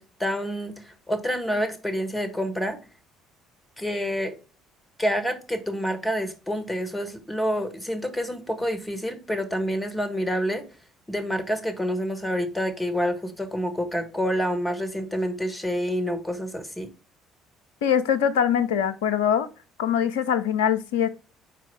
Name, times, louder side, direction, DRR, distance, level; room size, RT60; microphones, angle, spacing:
voice 1, 0.0-2.8 3.8-4.3 5.0-10.6 11.1-16.9, equal, 10° left, 1.5 m, -28 dB
voice 2, 17.8-19.5 19.8-21.1, left 8 dB, 70° left, 0.6 m, -23 dB
5.0 x 4.6 x 4.6 m
figure-of-eight pair, 50°, 0 cm